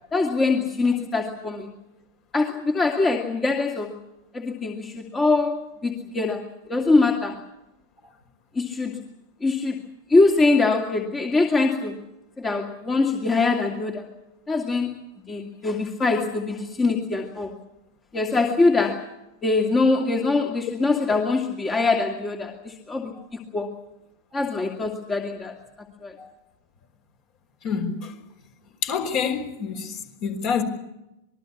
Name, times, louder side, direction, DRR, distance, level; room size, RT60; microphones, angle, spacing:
voice 1, 0.1-1.7 2.3-3.9 4.3-6.4 6.7-7.4 8.6-9.0 9.4-9.8 10.1-12.0 12.4-14.0 14.5-15.0 15.3-17.5 18.1-19.1 19.4-23.7 24.3-25.5 26.0-26.1, left 3 dB, 15° left, 2.5 m, -23 dB
voice 2, 27.6-28.1 28.8-30.6, left 6 dB, 45° left, 5.1 m, -27 dB
26.5 x 21.0 x 7.1 m
figure-of-eight pair, 90°, 0 cm